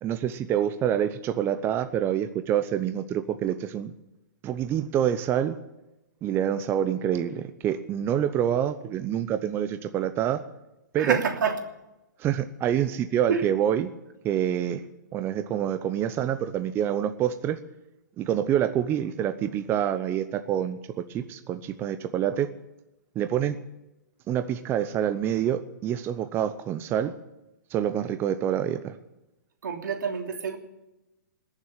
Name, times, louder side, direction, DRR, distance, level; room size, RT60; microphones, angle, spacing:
voice 1, 0.0-3.9 4.4-5.6 6.2-10.4 10.9-11.2 12.2-13.9 14.2-14.9 15.1-17.6 18.2-22.5 23.2-23.6 24.3-27.1 27.7-29.0, right 10 dB, 20° right, 10 dB, 0.7 m, -27 dB
voice 2, 10.9-11.6 13.3-13.5 29.6-30.6, right 6 dB, 80° right, 3 dB, 3.0 m, -27 dB
20.5 x 7.4 x 9.0 m, 0.96 s
hypercardioid pair, 135°, 10 cm